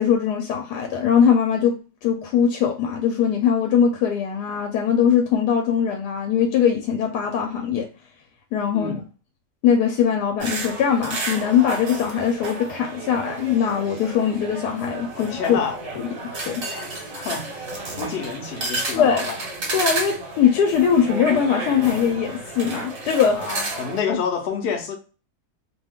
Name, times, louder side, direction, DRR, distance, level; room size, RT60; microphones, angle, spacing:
voice 1, 0.0-7.9 8.5-9.0 9.6-15.6 16.0-16.1 16.3-16.6 18.9-19.2 19.7-23.4, left 7 dB, 85° left, 1.1 m, -21 dB
sound 1, 10.4-24.0, right 2 dB, 45° right, 1.2 m, -32 dB
voice 2, 15.1-15.8 16.7-16.9 17.1-19.4 23.3-24.9, left 6 dB, 60° left, 0.7 m, -28 dB
2.8 x 2.2 x 3.4 m
omnidirectional pair, 1.7 m